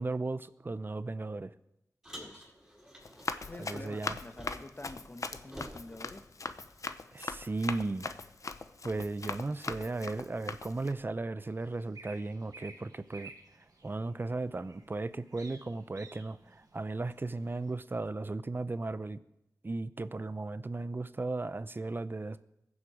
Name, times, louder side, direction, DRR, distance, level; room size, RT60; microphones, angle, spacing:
voice 1, 0.0-1.5 3.6-4.2 7.1-8.1 8.8-13.3 13.8-19.2 19.6-22.5, right 2 dB, 35° right, 15 dB, 0.6 m, -36 dB
Car, 2.0-4.9 5.1-6.9, equal, 5° right, 4.9 m, -51 dB
voice 2, 2.1-2.5 3.5-6.2, left 2 dB, 30° left, 7 dB, 1.2 m, -47 dB
Run, 3.0-10.9, left 4 dB, 60° left, 0.7 m, -40 dB
sound 1, 11.4-17.7, right 3 dB, 80° right, 1.8 m, -55 dB
21.5 x 7.3 x 5.0 m, 0.84 s
wide cardioid pair, 95°, 6 cm